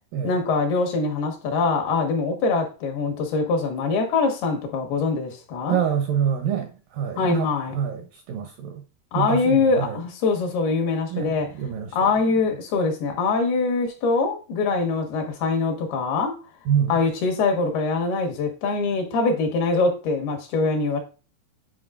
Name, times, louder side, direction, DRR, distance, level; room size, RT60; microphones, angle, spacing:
voice 1, 0.2-5.8 7.2-7.8 9.1-11.5 11.9-16.4 16.9-21.0, left 4 dB, 75° left, 3.3 m, -23 dB
voice 2, 5.7-7.5 7.7-8.0 8.3-8.8 9.2-10.0 11.1-12.0 16.7-16.9, right 8 dB, 75° right, 2.1 m, -26 dB
9.4 x 5.1 x 2.5 m
omnidirectional pair, 4.7 m